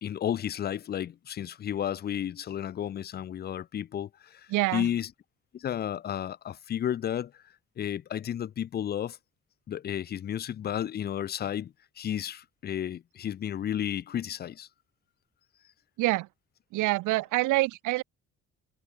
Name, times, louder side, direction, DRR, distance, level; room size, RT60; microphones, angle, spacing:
voice 1, 0.0-5.1 5.5-7.3 7.8-9.2 9.7-14.7, left 10 dB, 35° left, 0.4 m, -32 dB
voice 2, 4.5-4.9 16.0-16.3 16.7-18.0, right 20 dB, 85° right, 0.5 m, -26 dB
cardioid pair, 90°, 30 cm